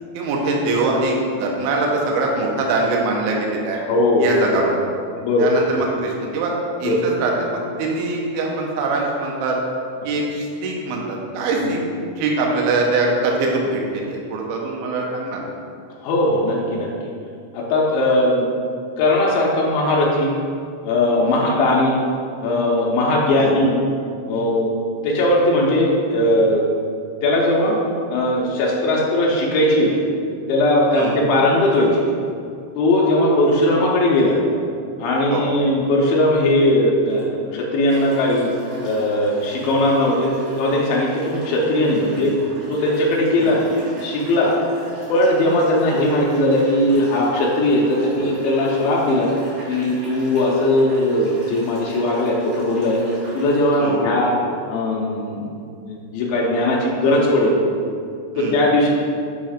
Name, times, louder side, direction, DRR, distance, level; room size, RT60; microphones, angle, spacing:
voice 1, 0.1-3.8 4.2-4.7 5.4-6.5 6.8-9.5 10.0-11.8 12.2-15.4 21.3-21.4 23.3-23.6 30.9-31.2 35.3-35.5 43.3-43.5 47.9-48.3 53.8-54.0 58.4-58.6, right 3 dB, 75° right, -1 dB, 2.3 m, -23 dB
voice 2, 3.9-4.4 5.2-5.8 6.8-7.0 10.0-10.1 11.6-11.7 16.0-16.9 17.5-18.4 19.0-20.3 20.8-22.0 22.4-23.7 24.3-24.7 25.0-26.6 27.2-27.8 28.1-30.1 30.5-32.0 32.8-34.4 35.0-38.5 38.8-40.3 40.6-42.3 42.7-43.6 44.0-44.5 45.1-49.3 49.7-53.0 53.3-54.3 54.7-55.5 55.9-57.6 58.4-58.9, left 1 dB, 85° left, -3 dB, 2.1 m, -18 dB
sound 1, 37.1-37.2 37.9-53.8, equal, 60° right, 3.2 m, -39 dB
8.1 x 3.1 x 5.0 m, 2.4 s
omnidirectional pair, 5.2 m